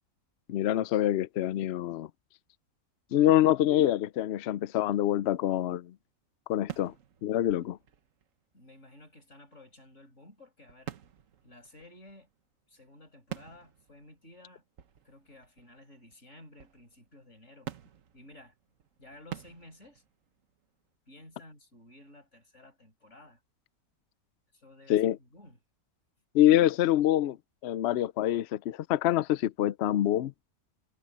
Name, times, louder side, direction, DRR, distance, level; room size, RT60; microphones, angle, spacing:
voice 1, 0.5-2.1 3.1-5.9 6.5-6.9 7.2-7.8 24.9-25.2 26.3-27.4 27.6-30.3, left 12 dB, 70° left, 0.6 m, -25 dB
sound 1, 4.6-5.3 5.7-5.8 6.7-8.6 10.7-12.4 12.7-12.8 13.3-16.2 16.5-17.3 17.7-20.8, right 10 dB, 60° right, 1.3 m, -47 dB
voice 2, 8.5-11.0 11.4-12.3 12.7-14.6 15.0-17.7 18.1-18.6 19.0-20.0 21.1-23.4 24.5-25.6, left 1 dB, 50° left, 7.3 m, -54 dB
omnidirectional pair, 1.6 m